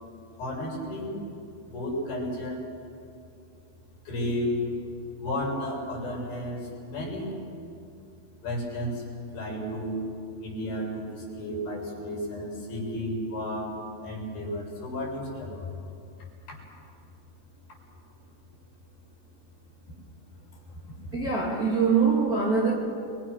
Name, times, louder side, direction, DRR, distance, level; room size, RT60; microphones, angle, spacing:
voice 1, 0.4-1.2 1.6-2.6 4.0-4.8 5.2-7.4 8.4-9.1 9.3-10.0 10.4-15.8 16.5-16.6 19.9-20.0 20.7-20.9, left 1 dB, 55° left, 8.0 m, -33 dB
voice 2, 21.1-22.7, right 5 dB, 25° right, 2.2 m, -23 dB
30.0 x 24.0 x 6.3 m
omnidirectional pair, 5.0 m